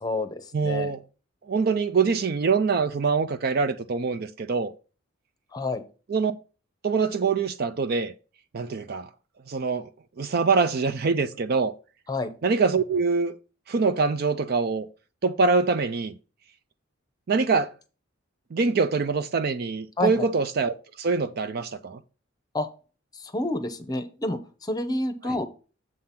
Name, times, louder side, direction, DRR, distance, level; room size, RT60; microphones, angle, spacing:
voice 1, 0.0-0.9 5.5-5.8 12.1-12.3 20.0-20.3 22.5-22.7 23.2-25.4, left 2 dB, 20° left, 0.7 m, -29 dB
voice 2, 0.5-1.0 1.5-4.7 6.1-6.3 6.8-8.1 8.5-9.1 9.5-9.9 10.2-11.7 12.4-13.3 13.7-14.9 15.2-16.1 17.3-17.7 18.5-22.0, right 4 dB, 50° right, 0.4 m, -24 dB
7.6 x 3.8 x 5.7 m
head